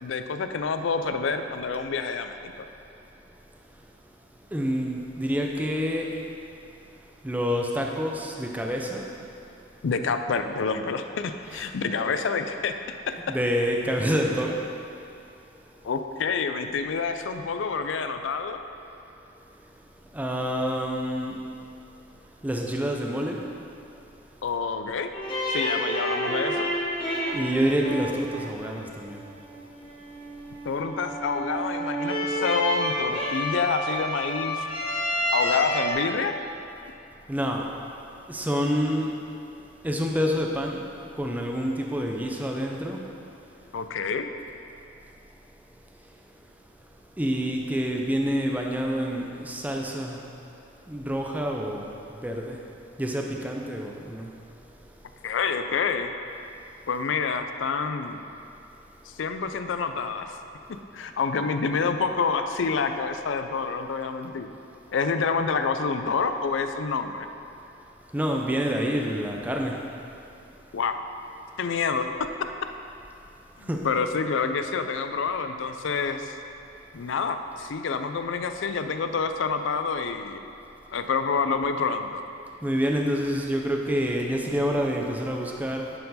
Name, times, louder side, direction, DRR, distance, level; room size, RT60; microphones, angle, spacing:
voice 1, 0.0-2.5 9.8-12.7 13.1-13.2 15.8-18.6 24.4-25.1 25.5-26.7 30.6-34.6 35.3-36.3 43.7-44.3 55.2-56.1 56.9-58.2 59.1-60.3 60.9-64.5 64.9-67.3 70.7-71.0 71.6-72.1 73.6-76.4 76.9-80.4 80.9-82.2, left 5 dB, 70° left, 8 dB, 0.4 m, -27 dB
voice 2, 4.5-6.3 7.2-9.1 11.5-11.6 11.9-12.1 13.3-14.7 20.1-21.5 22.4-23.5 27.3-29.2 37.3-37.7 38.3-39.2 39.8-40.9 41.1-43.0 45.9-46.0 47.2-50.3 50.9-52.7 53.0-54.3 68.1-69.9 73.6-73.9 82.6-85.9, equal, 10° right, 1 dB, 0.5 m, -27 dB
sound 1, 25.1-35.9, equal, 30° left, 1.2 m, -29 dB
10.0 x 4.5 x 4.1 m, 2.7 s
head